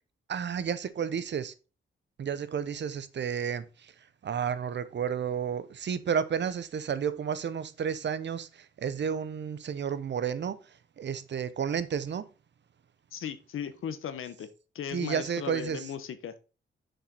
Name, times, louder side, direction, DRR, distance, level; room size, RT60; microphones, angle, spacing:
voice 1, 0.3-1.5 2.2-3.9 4.2-10.6 11.0-12.2 14.9-15.8, right 7 dB, 60° right, 0.8 m, -31 dB
voice 2, 13.1-14.5 14.7-16.3, left 8 dB, 85° left, 0.9 m, -37 dB
6.4 x 5.0 x 4.1 m
cardioid pair, 90°, 21 cm